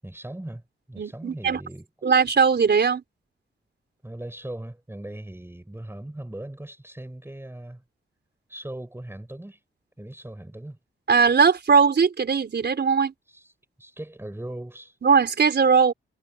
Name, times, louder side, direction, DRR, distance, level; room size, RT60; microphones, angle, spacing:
voice 1, 0.0-0.6 0.9-1.9 4.0-7.8 8.5-9.6 10.0-10.8 13.3-13.5 13.8-15.0, right 1 dB, 10° right, 7.3 m, -39 dB
voice 2, 1.0-1.6 2.0-3.0 11.1-13.1 15.0-15.9, right 6 dB, 55° right, 4.5 m, -19 dB
cardioid pair, 85°, 21 cm